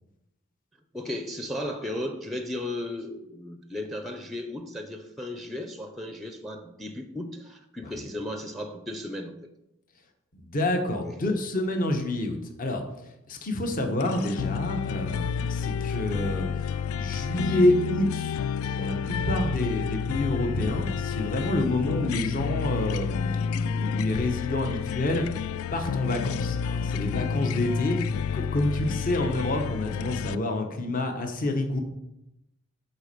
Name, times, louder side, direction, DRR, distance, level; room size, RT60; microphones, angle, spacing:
voice 1, 0.9-9.5 11.0-11.2, left 1 dB, ahead, 6 dB, 0.5 m, -35 dB
voice 2, 10.5-12.8 13.3-16.5 16.9-18.4 18.7-25.3 25.7-28.1 28.3-31.8, left 1 dB, 40° left, 4 dB, 1.0 m, -28 dB
sound 1, 14.0-30.4, left 7 dB, 80° left, 0.3 m, -30 dB
8.1 x 4.2 x 6.7 m, 0.88 s
head